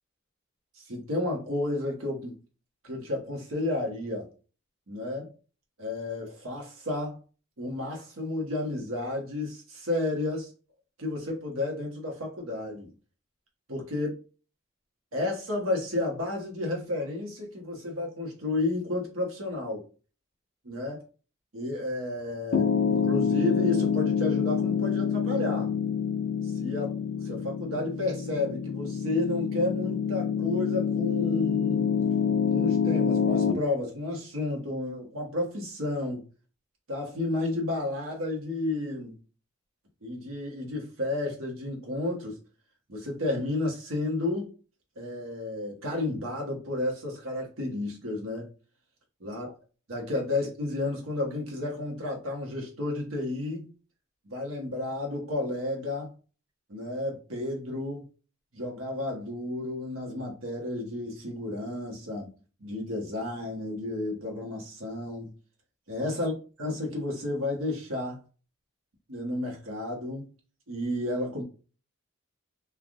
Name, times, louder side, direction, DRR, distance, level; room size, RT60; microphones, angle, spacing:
voice 1, 0.8-2.4 2.8-4.3 4.9-5.3 5.8-7.2 7.6-10.5 11.0-12.9 13.7-14.1 15.1-19.8 20.6-21.0 21.5-25.7 26.4-26.9 27.2-31.9 32.5-36.3 36.9-39.2 40.0-42.4 42.9-44.5 45.0-48.5 49.2-49.5 49.9-53.7 54.2-56.1 56.7-58.1 58.5-62.3 62.6-65.3 65.9-66.3 66.6-68.2 69.1-70.3 70.7-71.4, left 2 dB, 85° right, 1.1 m, -32 dB
Piano, 22.5-33.5, left 7 dB, 75° left, 0.5 m, -27 dB
3.3 x 2.4 x 2.4 m
head